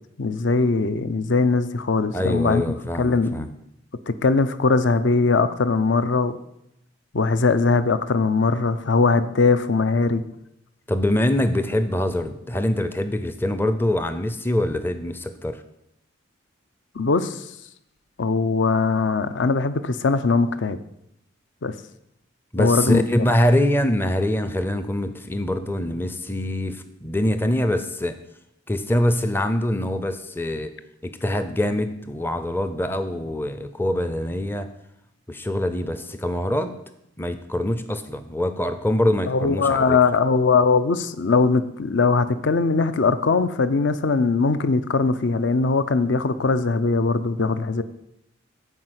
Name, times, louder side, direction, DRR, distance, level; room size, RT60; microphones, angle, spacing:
voice 1, 0.2-2.6 3.0-3.5 4.1-6.4 7.1-10.2 17.0-17.4 18.2-20.8 21.6-21.7 22.6-23.0 39.3-47.8, left 4 dB, 65° left, 12 dB, 0.6 m, -20 dB
voice 2, 2.1-3.5 10.9-15.6 22.5-28.2 28.7-30.7 31.0-34.7 35.3-36.7 37.2-40.0, left 1 dB, 10° left, 9 dB, 0.5 m, -24 dB
9.9 x 4.8 x 7.8 m, 0.82 s
head